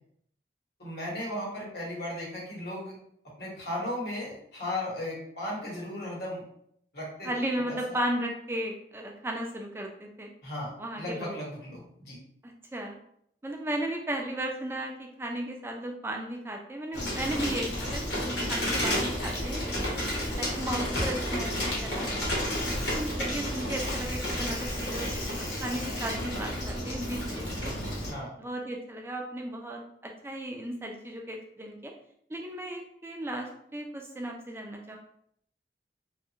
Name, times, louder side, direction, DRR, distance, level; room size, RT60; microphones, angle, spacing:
voice 1, 0.8-2.9 3.4-6.4 6.9-7.3 7.7-8.0 10.4-12.2 28.0-28.3, left 1 dB, 65° left, -4 dB, 1.1 m, -36 dB
voice 2, 7.2-10.3 10.8-11.3 12.4-13.0 13.4-18.0 18.5-19.9 20.3-22.1 22.8-27.8 28.4-31.9 32.3-35.0, right 1 dB, 15° right, 1 dB, 0.3 m, -35 dB
Bicycle, 16.9-28.1, left 1 dB, 85° left, 1.1 m, -31 dB
2.8 x 2.4 x 2.7 m, 0.70 s
head